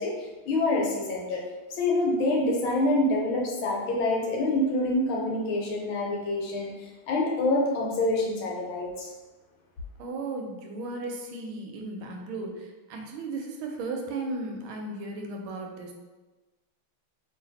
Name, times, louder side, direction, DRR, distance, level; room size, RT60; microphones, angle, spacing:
voice 1, 0.0-1.4 1.7-9.1, left 2 dB, 75° left, -2 dB, 1.6 m, -26 dB
voice 2, 10.0-15.9, right 2 dB, 80° right, 2 dB, 1.4 m, -35 dB
3.2 x 2.8 x 3.9 m, 1.2 s
omnidirectional pair, 2.3 m